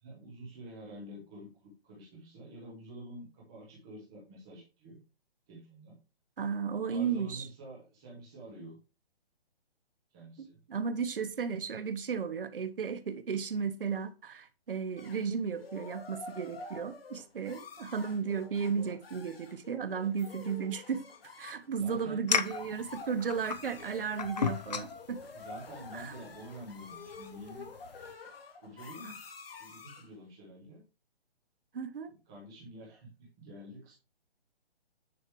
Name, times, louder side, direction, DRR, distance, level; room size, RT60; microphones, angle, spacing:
voice 1, 0.0-5.0 5.5-6.0 6.8-8.8 10.1-10.6 21.8-22.2 25.3-27.7 28.6-29.3 29.6-30.8 32.0-33.9, right 1 dB, 5° right, 0.6 m, -48 dB
voice 2, 6.4-7.5 10.4-21.1 21.4-25.2 25.9-26.1 29.0-29.1 31.7-32.1, right 6 dB, 60° right, 1.0 m, -34 dB
sound 1, 15.0-30.2, left 4 dB, 70° left, 1.8 m, -48 dB
sound 2, 22.3-28.1, left 6 dB, 45° left, 0.5 m, -37 dB
9.6 x 3.3 x 4.6 m
hypercardioid pair, 175°, 31 cm